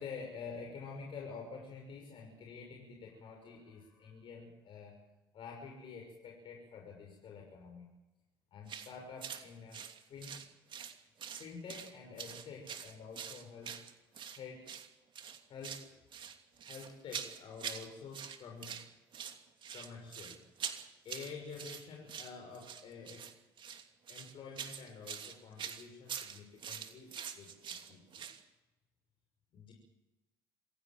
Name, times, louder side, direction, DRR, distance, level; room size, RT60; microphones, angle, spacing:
voice 1, 0.0-5.0 5.3-7.9 8.5-9.8 10.1-10.4 11.3-13.8 14.3-14.7 15.5-15.9 16.6-18.8 19.7-20.4 21.0-23.2 24.1-28.2 29.5-29.7, left 5 dB, 55° left, 1 dB, 6.2 m, -48 dB
sound 1, 8.7-8.9 9.2-9.4 9.7-10.9 11.2-11.9 12.2-14.4 14.7-14.9 15.2-17.9 18.1-18.9 19.1-28.4, right 8 dB, 50° right, 2.8 m, -44 dB
26.5 x 16.5 x 7.6 m, 1.0 s
hypercardioid pair, 60°, 10 cm